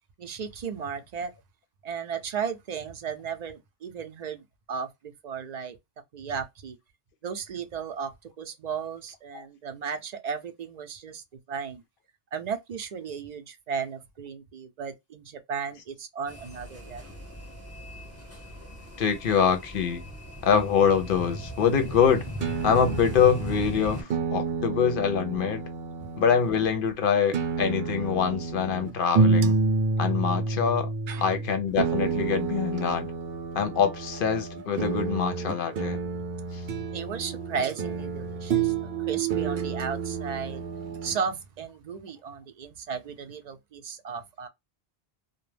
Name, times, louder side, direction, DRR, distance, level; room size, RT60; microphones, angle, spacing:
voice 1, 0.2-1.3 1.8-5.8 6.1-6.8 7.2-8.1 8.4-11.8 12.3-17.0 31.1-31.2 36.9-38.7 39.1-44.5, right 6 dB, 50° right, 0.6 m, -35 dB
sound 1, 16.3-24.0, equal, 15° left, 1.0 m, -38 dB
voice 2, 19.0-20.0 20.4-22.2 22.6-25.6 26.2-29.5 30.0-30.9 31.2-33.1 33.5-36.0, left 7 dB, 65° left, 0.7 m, -24 dB
sound 2, 21.6-26.7 27.3-41.2, right 4 dB, 75° right, 0.8 m, -29 dB
2.3 x 2.1 x 3.2 m
omnidirectional pair, 1.0 m